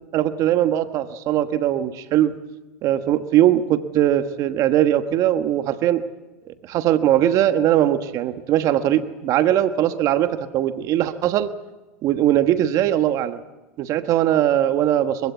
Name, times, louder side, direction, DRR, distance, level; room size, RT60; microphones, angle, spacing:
voice 1, 0.1-2.3 2.8-6.0 6.5-11.5 12.0-13.4 13.8-15.3, right 12 dB, 50° right, 10 dB, 1.3 m, -20 dB
26.0 x 15.5 x 8.3 m, 1.1 s
hypercardioid pair, 105°, 7 cm